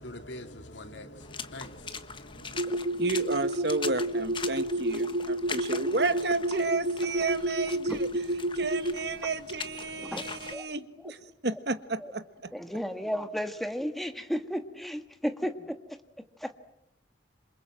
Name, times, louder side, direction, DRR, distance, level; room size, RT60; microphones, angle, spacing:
voice 1, 0.0-2.6, left 1 dB, 70° left, 2.3 m, -44 dB
Water / Splash splatter, 1.2-10.5, left 5 dB, 25° left, 1.3 m, -42 dB
voice 2, 2.4-8.1 8.5-12.5, right 3 dB, 55° right, 1.5 m, -32 dB
sound 1, 2.5-8.9, right 1 dB, 80° right, 2.0 m, -30 dB
voice 3, 10.0-10.7 12.0-12.1 12.5-15.8 16.4-16.5, equal, ahead, 1.6 m, -33 dB
28.0 x 27.0 x 7.7 m
head